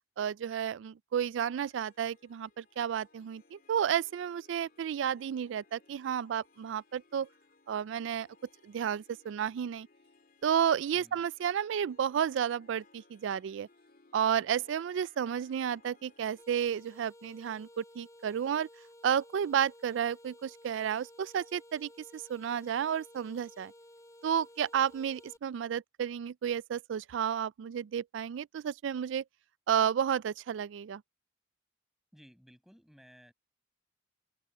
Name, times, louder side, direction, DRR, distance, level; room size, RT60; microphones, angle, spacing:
voice 1, 0.2-7.3 7.7-8.3 8.6-9.9 10.4-13.7 14.1-18.7 19.0-23.7 24.2-29.2 29.7-31.0, right 8 dB, 70° right, 0.3 m, -32 dB
Harp, 1.6-16.4, left 3 dB, 50° left, 2.7 m, -64 dB
sound 1, 16.4-25.4, left 1 dB, 15° left, 4.9 m, -55 dB
voice 2, 32.1-33.3, equal, ahead, 7.8 m, -58 dB
open air
head